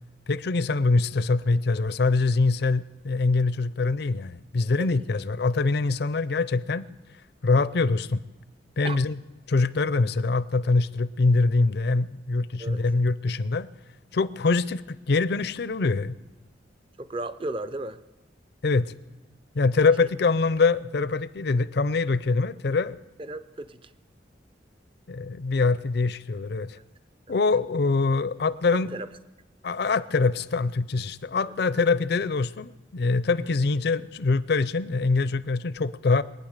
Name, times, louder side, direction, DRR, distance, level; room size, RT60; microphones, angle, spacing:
voice 1, 0.3-6.9 7.4-8.2 8.8-9.1 9.5-13.7 14.1-16.2 18.6-18.9 19.6-23.0 25.1-26.8 27.3-28.9 29.6-36.2, left 3 dB, 65° left, 17 dB, 0.5 m, -24 dB
voice 2, 17.0-18.0 23.2-23.9 27.3-27.4 28.9-29.1 31.4-31.5 33.3-33.4, right 2 dB, 30° right, 12 dB, 0.6 m, -35 dB
23.0 x 9.4 x 6.6 m, 1.1 s
head